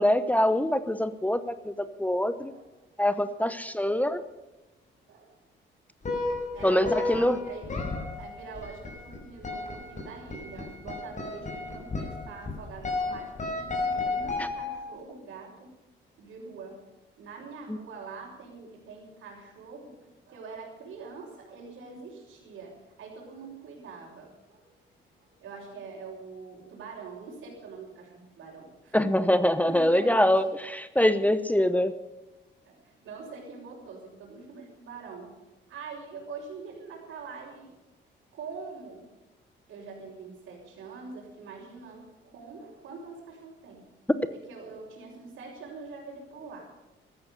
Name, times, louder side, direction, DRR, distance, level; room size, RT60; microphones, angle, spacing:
voice 1, 0.0-2.5 3.0-4.2 6.6-7.4 28.9-31.9, left 1 dB, 5° left, 12 dB, 0.9 m, -24 dB
sound 1, 6.0-15.0, left 3 dB, 40° left, 6.0 m, -33 dB
voice 2, 6.5-7.7 8.2-15.7 16.2-16.8 17.2-20.0 20.3-22.7 23.0-24.6 25.2-30.3 32.6-35.3 35.7-37.8 38.3-39.0 39.7-43.8 44.3-46.7, right 4 dB, 75° right, -6 dB, 5.7 m, -44 dB
14.5 x 14.0 x 6.9 m, 1.0 s
cardioid pair, 90°, 20 cm